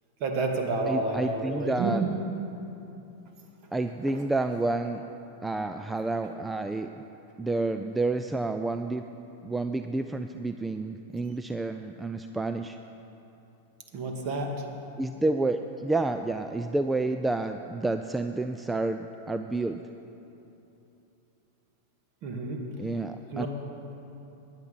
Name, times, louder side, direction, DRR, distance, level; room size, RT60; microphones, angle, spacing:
voice 1, 0.2-1.9 4.1-4.2 13.9-14.6 22.2-22.6 23.3-23.5, right 3 dB, 40° right, 3 dB, 2.0 m, -30 dB
voice 2, 0.9-2.0 3.7-5.0 5.4-7.0 7.4-9.0 9.4-12.8 15.0-19.8 22.8-23.5, right 2 dB, 10° right, 8 dB, 0.4 m, -29 dB
16.0 x 10.5 x 5.5 m, 2.9 s
figure-of-eight pair, 90°, 0 cm